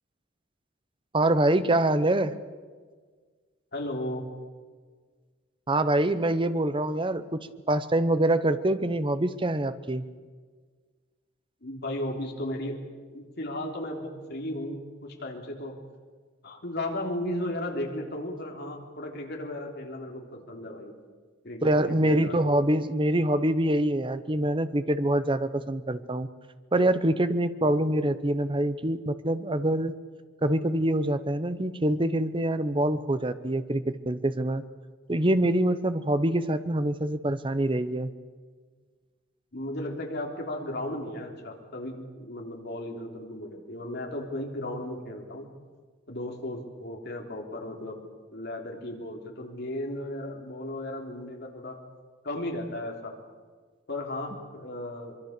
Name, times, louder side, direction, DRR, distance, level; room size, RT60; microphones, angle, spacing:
voice 1, 1.1-2.3 5.7-10.0 21.6-26.3 26.7-29.9 30.4-34.6 35.1-38.1, right 1 dB, 25° right, 12 dB, 0.9 m, -25 dB
voice 2, 3.7-4.3 11.6-12.8 13.1-15.7 16.4-20.9 21.4-22.6 27.6-27.8 39.5-45.5 46.1-48.1 48.3-51.8 52.2-53.2 53.9-55.2, left 1 dB, 55° left, 1 dB, 3.7 m, -35 dB
24.0 x 23.0 x 6.8 m, 1.5 s
head